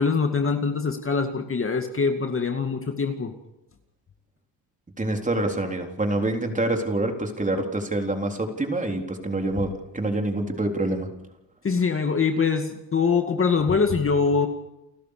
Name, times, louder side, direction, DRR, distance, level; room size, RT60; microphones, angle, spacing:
voice 1, 0.0-3.3 11.6-14.5, left 5 dB, 30° left, 5 dB, 2.1 m, -23 dB
voice 2, 5.0-11.1, right 2 dB, 15° right, 4 dB, 3.8 m, -26 dB
30.0 x 13.5 x 6.7 m, 0.90 s
cardioid pair, 115°, 44 cm